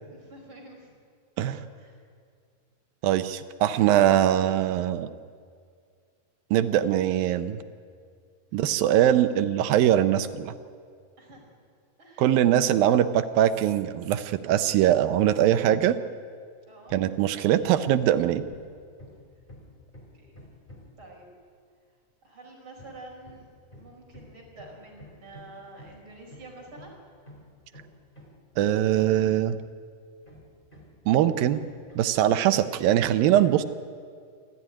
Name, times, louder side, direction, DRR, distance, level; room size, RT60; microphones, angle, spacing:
voice 1, 0.1-0.9 1.4-2.0 11.2-11.5 12.0-12.3 16.7-17.0 20.1-20.3 21.0-21.3 22.2-23.5 23.7-26.9, right 2 dB, 30° right, 0 dB, 5.4 m, -48 dB
voice 2, 3.0-5.1 6.5-7.6 8.5-10.5 12.2-16.0 16.9-18.4 28.6-29.6 31.1-31.6 32.0-33.6, right 11 dB, 75° right, 10 dB, 2.3 m, -22 dB
Hammer, 16.9-17.2 17.5-21.0 22.8-29.7 30.3-32.2, left 1 dB, 15° left, 3.3 m, -50 dB
27.0 x 14.0 x 9.9 m, 2.1 s
omnidirectional pair, 4.7 m